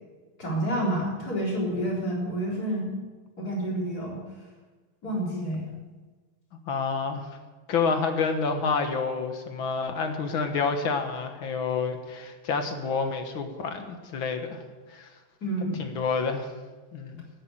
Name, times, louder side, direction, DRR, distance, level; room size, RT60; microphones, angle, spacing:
voice 1, 0.4-3.0 3.4-4.2 5.0-5.7 15.4-15.9, right 1 dB, 45° left, -3 dB, 4.4 m, -29 dB
voice 2, 6.7-7.3 7.7-14.6 14.9-15.1 15.8-16.5 16.9-17.2, left 5 dB, 65° left, 6 dB, 2.2 m, -28 dB
13.5 x 10.5 x 7.9 m, 1.3 s
omnidirectional pair, 2.4 m